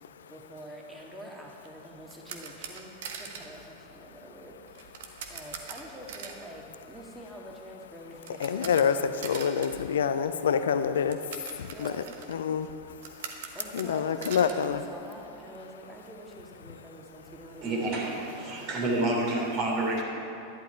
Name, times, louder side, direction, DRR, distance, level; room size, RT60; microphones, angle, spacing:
voice 1, 0.3-2.9 3.1-4.9 5.3-9.5 11.7-12.3 13.5-17.9 18.4-18.7, right 1 dB, 10° right, -1 dB, 1.9 m, -46 dB
sound 1, 1.6-15.6 15.9-16.0 16.4-16.5 16.8-18.3, right 6 dB, 65° right, 1.1 m, -44 dB
voice 2, 8.4-11.2 11.8-11.9 12.3-12.7 13.7-14.8, left 7 dB, 70° left, 12 dB, 0.5 m, -26 dB
voice 3, 17.6-20.0, right 2 dB, 45° right, -2 dB, 3.2 m, -29 dB
11.5 x 10.5 x 4.5 m, 2.7 s
figure-of-eight pair, 90°, 0 cm